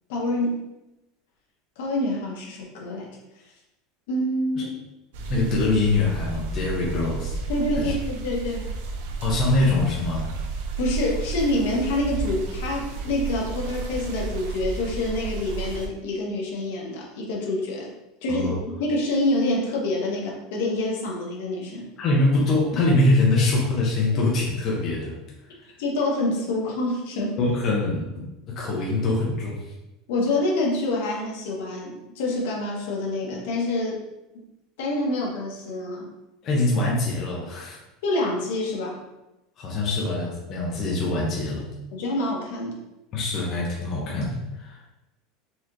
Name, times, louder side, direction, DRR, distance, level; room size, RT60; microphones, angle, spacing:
voice 1, 0.1-0.6 1.8-3.1 4.1-4.7 7.5-8.7 10.8-17.9 18.2-21.9 25.8-27.4 30.1-34.0 34.8-36.1 38.0-39.0 41.9-42.8, left 1 dB, 75° left, -2 dB, 1.1 m, -26 dB
sound 1, 5.1-15.9, right 4 dB, 70° right, 0.5 m, -32 dB
voice 2, 5.3-7.4 7.7-8.0 9.2-10.4 18.3-18.6 22.0-25.2 27.4-29.7 36.4-37.8 39.6-41.7 43.1-44.8, left 2 dB, 30° left, -4 dB, 0.7 m, -24 dB
4.1 x 2.9 x 2.6 m, 0.96 s
supercardioid pair, 165°, 0 cm